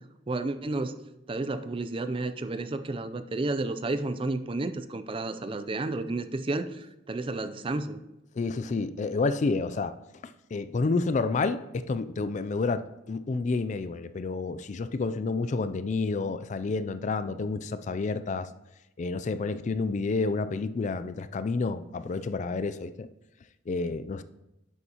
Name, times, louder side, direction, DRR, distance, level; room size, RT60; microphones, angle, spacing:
voice 1, 0.3-1.0 1.3-8.0, right 2 dB, 30° right, 10 dB, 0.4 m, -31 dB
voice 2, 8.4-18.5 19.0-23.1 23.7-24.2, left 3 dB, 40° left, 13 dB, 0.4 m, -29 dB
10.0 x 8.1 x 2.9 m, 0.94 s
head